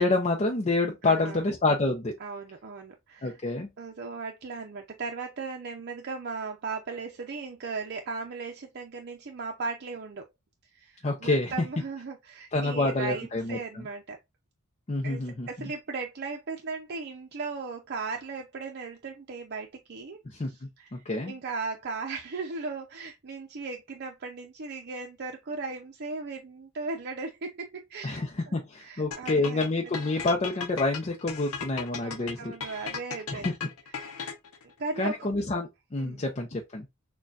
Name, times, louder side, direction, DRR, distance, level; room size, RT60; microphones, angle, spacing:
voice 1, 0.0-2.1 3.2-3.7 11.0-11.5 12.5-13.8 14.9-15.7 20.2-21.3 28.0-32.5 33.3-33.5 35.0-36.9, left 2 dB, 35° left, 0.6 m, -28 dB
voice 2, 1.0-1.4 2.2-3.4 3.8-10.3 10.7-14.2 15.0-20.2 20.5-28.2 28.8-29.7 32.0-33.5 33.9-34.2 34.8-35.3 36.0-36.2, right 4 dB, 50° right, 0.6 m, -37 dB
sound 1, 29.1-34.6, left 6 dB, 80° left, 0.7 m, -36 dB
6.4 x 2.3 x 2.4 m
head